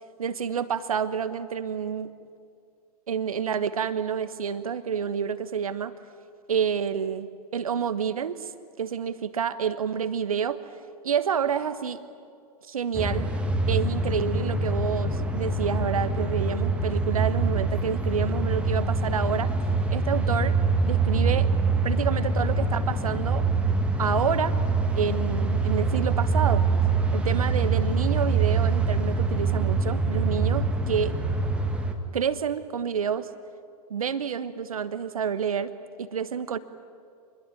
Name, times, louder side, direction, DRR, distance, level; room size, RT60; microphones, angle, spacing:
voice 1, 0.2-2.1 3.1-5.9 6.5-8.5 8.8-10.6 11.0-12.0 12.7-13.3 13.7-19.5 19.9-20.6 20.8-21.5 21.8-23.5 24.0-24.6 24.9-26.7 27.1-31.2 32.1-33.3 33.9-35.7 36.0-36.6, right 7 dB, 65° right, 13 dB, 1.4 m, -28 dB
sound 1, 12.9-31.9, right 3 dB, 5° right, 2.0 m, -25 dB
27.0 x 21.5 x 9.2 m, 2.4 s
figure-of-eight pair, 105°, 20 cm